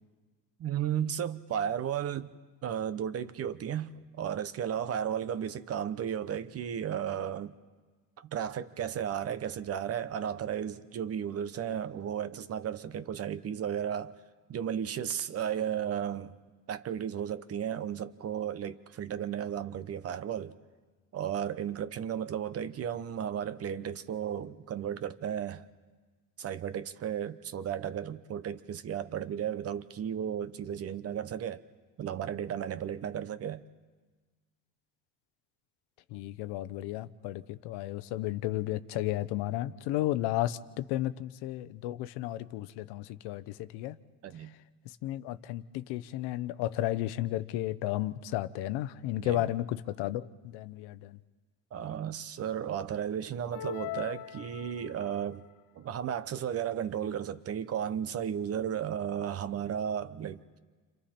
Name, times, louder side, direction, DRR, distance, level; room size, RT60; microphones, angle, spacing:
voice 1, 0.6-2.3 2.6-7.5 8.2-14.2 14.5-16.4 16.7-20.6 21.1-25.7 26.4-31.6 32.0-33.6 44.2-44.5 49.2-49.5 51.7-55.5 55.8-60.4, right 9 dB, 35° right, 0.8 m, -34 dB
voice 2, 36.1-44.0 45.0-51.2, left 14 dB, 80° left, 0.9 m, -33 dB
sound 1, 53.5-55.2, left 11 dB, 50° left, 0.8 m, -40 dB
30.0 x 26.5 x 4.4 m
cardioid pair, 135°, 40 cm